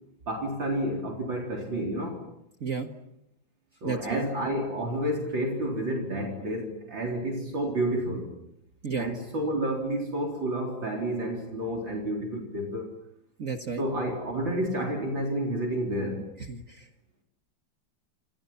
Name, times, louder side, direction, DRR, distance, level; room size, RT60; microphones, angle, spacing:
voice 1, 0.3-2.2 3.8-8.4 9.0-12.9 13.8-16.3, right 1 dB, 70° right, 0 dB, 4.7 m, -30 dB
voice 2, 3.8-4.3 8.8-9.1 13.4-13.8 16.4-16.9, right 5 dB, 45° right, 5 dB, 1.8 m, -32 dB
29.5 x 28.0 x 5.8 m, 0.79 s
omnidirectional pair, 2.1 m